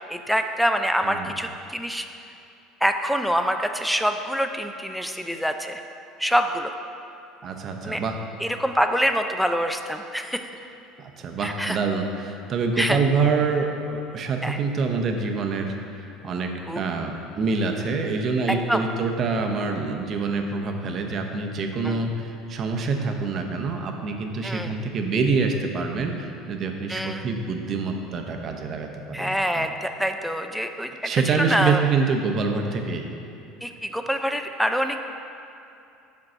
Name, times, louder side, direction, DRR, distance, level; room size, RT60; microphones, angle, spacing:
voice 1, 0.1-2.1 2.8-5.8 6.2-6.7 7.8-8.0 8.4-10.4 11.4-11.8 12.8-13.0 14.4-14.6 16.7-16.8 18.5-18.8 21.8-22.0 24.4-24.7 26.9-27.3 29.1-31.8 33.6-35.0, equal, ahead, 6 dB, 0.4 m, -25 dB
voice 2, 7.4-8.2 11.0-16.5 16.8-29.7 31.0-33.1, right 4 dB, 45° right, 4 dB, 0.7 m, -26 dB
5.0 x 4.6 x 6.1 m, 2.7 s
supercardioid pair, 100°, 0 cm